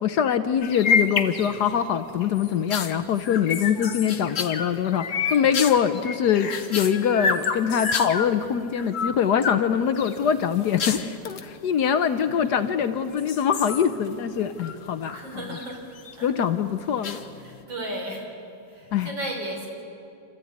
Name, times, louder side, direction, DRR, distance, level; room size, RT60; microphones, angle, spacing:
voice 1, 0.0-15.6 16.2-17.2 18.9-19.1, left 8 dB, 65° left, 10 dB, 1.2 m, -23 dB
sound 1, 0.6-1.8 2.2-8.3 8.7-9.6 10.0-11.5 12.3-12.8 13.2-15.2 15.5-16.1 17.0-17.6, left 5 dB, 50° left, 1.2 m, -29 dB
voice 2, 15.1-15.9 16.2-16.3 17.4-18.3 18.7-19.7, right 1 dB, 70° right, 0 dB, 4.6 m, -34 dB
28.5 x 14.0 x 9.5 m, 2.6 s
omnidirectional pair, 2.1 m